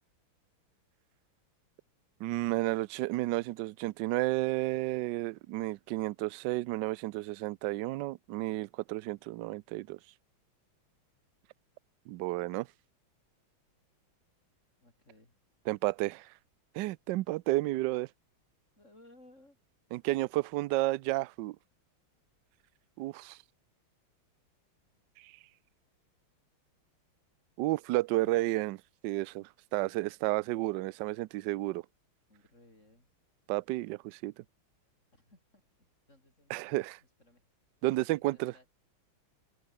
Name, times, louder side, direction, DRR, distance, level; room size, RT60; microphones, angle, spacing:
voice 1, 2.2-10.0 12.1-12.7 15.7-16.3 16.7-18.1 19.9-21.6 23.0-23.4 25.2-25.3 27.6-28.8 29.0-31.8 33.5-34.4 36.5-37.0 37.8-38.5, right 18 dB, 75° right, 1.1 m, -32 dB
voice 2, 14.8-15.4 18.8-19.6 28.2-28.6 30.4-30.7 32.3-33.1 35.1-37.4 37.8-38.7, left 1 dB, 35° left, 8.5 m, -61 dB
omnidirectional pair, 2.3 m